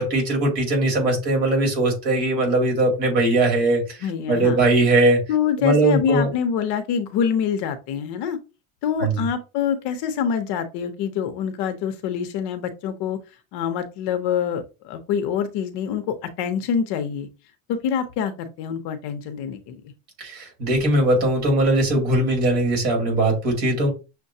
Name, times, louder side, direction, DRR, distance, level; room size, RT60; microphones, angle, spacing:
voice 1, 0.0-4.0 4.3-5.2 5.6-6.3 9.0-9.2 20.2-23.9, right 2 dB, 50° right, 1 dB, 2.3 m, -20 dB
voice 2, 4.0-4.6 5.3-8.4 8.8-13.2 13.5-17.3 17.7-19.8, left 7 dB, 55° left, 8 dB, 0.7 m, -25 dB
6.4 x 2.2 x 2.7 m, 0.29 s
cardioid pair, 150°, 49 cm